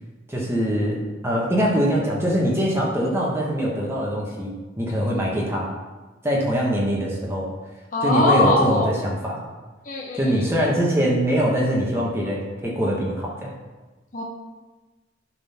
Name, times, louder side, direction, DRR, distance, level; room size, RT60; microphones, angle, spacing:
voice 1, 0.3-5.7 6.2-7.5 8.0-9.4 10.1-13.5, equal, 15° right, -3 dB, 1.3 m, -23 dB
voice 2, 7.9-8.9 9.9-10.5 14.1-14.2, left 2 dB, 45° left, -1 dB, 0.9 m, -21 dB
11.0 x 3.9 x 5.7 m, 1.2 s
head